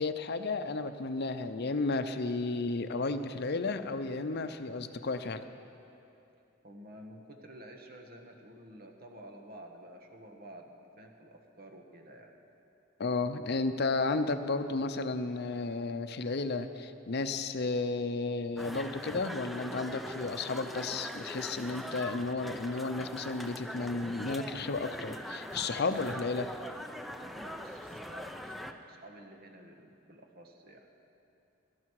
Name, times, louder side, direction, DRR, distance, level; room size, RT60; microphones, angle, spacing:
voice 1, 0.0-5.5 13.0-26.5, left 3 dB, 55° left, 9 dB, 0.6 m, -33 dB
voice 2, 6.6-12.4 27.3-30.9, right 1 dB, 50° right, 3 dB, 1.4 m, -51 dB
sound 1, 18.6-28.7, equal, ahead, 0.5 m, -42 dB
17.0 x 13.0 x 4.8 m, 2.8 s
head